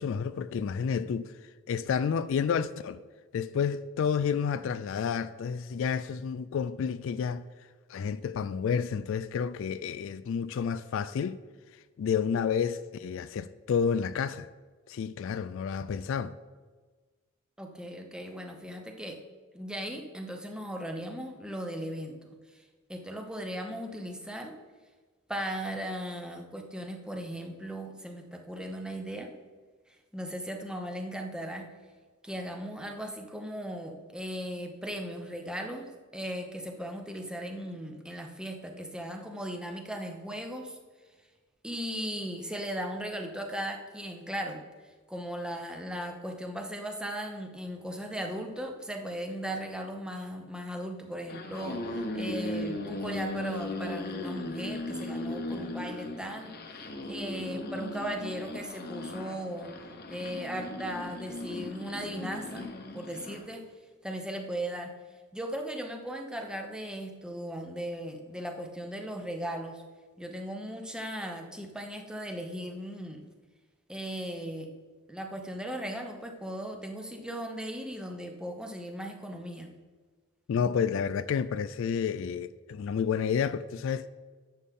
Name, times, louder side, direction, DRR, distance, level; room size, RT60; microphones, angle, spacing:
voice 1, 0.0-1.3 1.7-3.0 3.3-7.4 7.9-11.4 12.0-14.5 14.9-16.3 80.5-84.1, left 6 dB, 65° left, 0.3 m, -30 dB
voice 2, 17.6-19.2 19.5-22.2 22.5-22.6 22.9-24.5 25.3-29.3 30.1-31.7 32.2-40.8 41.6-44.6 45.1-59.7 60.1-63.6 64.0-64.9 65.3-69.8 70.2-73.3 73.9-74.7 75.1-79.7, equal, 5° right, 0.8 m, -37 dB
sound 1, 51.1-63.5, left 1 dB, 50° left, 1.0 m, -37 dB
10.5 x 7.1 x 3.6 m
head